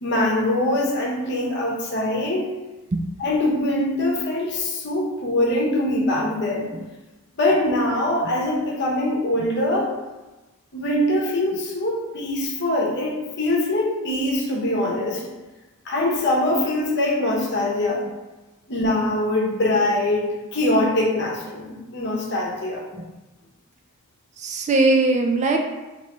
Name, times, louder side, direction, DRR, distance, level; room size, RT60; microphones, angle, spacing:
voice 1, 0.0-2.5 3.2-6.7 7.4-9.9 10.7-15.2 15.9-18.0 18.7-22.8, left 1 dB, 50° left, -1 dB, 0.8 m, -23 dB
voice 2, 24.4-25.6, right 2 dB, 30° right, 2 dB, 0.3 m, -20 dB
3.0 x 2.9 x 4.4 m, 1.1 s
head